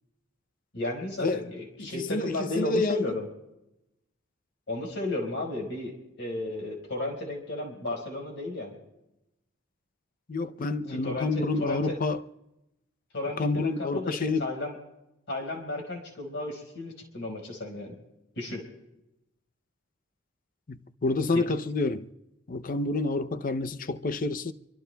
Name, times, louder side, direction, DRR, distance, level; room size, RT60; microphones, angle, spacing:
voice 1, 0.7-3.3 4.7-8.8 10.9-12.0 13.1-14.7 15.3-18.0 18.3-18.6 21.3-21.4, left 2 dB, 65° left, 4.7 m, -34 dB
voice 2, 1.8-3.1 10.3-12.2 13.4-14.5 20.7-22.1 22.5-24.5, left 3 dB, 45° left, 0.6 m, -28 dB
24.5 x 24.0 x 2.3 m
head